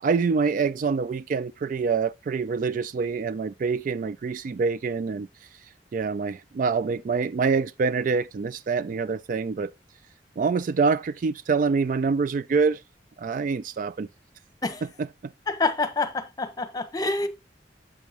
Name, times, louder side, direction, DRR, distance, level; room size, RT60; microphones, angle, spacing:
voice 1, 0.0-5.3 5.9-9.7 10.4-12.8 13.2-14.1 14.8-14.9 15.2-15.3, right 5 dB, 50° right, 0.3 m, -25 dB
voice 2, 15.5-17.3, left 3 dB, 20° left, 1.0 m, -27 dB
7.2 x 7.0 x 2.9 m
head